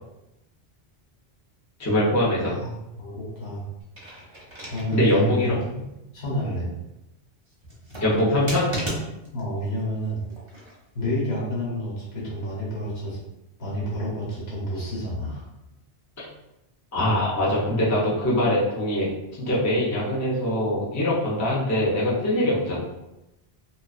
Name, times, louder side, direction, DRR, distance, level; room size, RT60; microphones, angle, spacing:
voice 1, 1.8-2.5 4.9-5.6 8.0-8.7 16.2-16.3 16.9-22.8, left 1 dB, 20° left, -7 dB, 0.5 m, -23 dB
voice 2, 2.5-3.7 4.7-5.9 6.1-6.7 9.3-10.2 10.9-13.2 13.6-15.5, equal, 70° left, -6 dB, 1.2 m, -29 dB
sound 1, 3.8-5.2 5.6-5.7 7.6-9.4 10.3-10.8, equal, 30° right, 0.6 m, -34 dB
2.3 x 2.3 x 2.3 m, 0.93 s
omnidirectional pair, 1.1 m